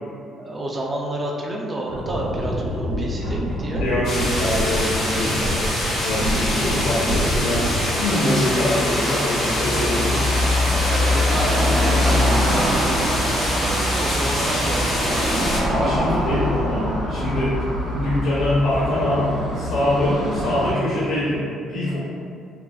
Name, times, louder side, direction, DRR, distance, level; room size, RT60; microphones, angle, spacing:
voice 1, 0.4-3.8 10.9-15.3, right 1 dB, 20° right, -2 dB, 0.3 m, -30 dB
sound 1, 1.9-8.1, equal, 65° right, 1.0 m, -26 dB
voice 2, 3.8-5.3 6.0-7.7 7.9-10.2 15.7-17.6 17.9-19.3 19.5-21.4 21.7-22.0, left 1 dB, 60° left, -10 dB, 0.6 m, -23 dB
sound 2, 4.0-15.6, left 1 dB, 85° left, 1.1 m, -25 dB
Car passing by / Traffic noise roadway noise, 7.1-20.7, left 1 dB, 80° right, 0.7 m, -24 dB
3.4 x 2.4 x 2.3 m, 2.3 s
cardioid pair, 165°, 0 cm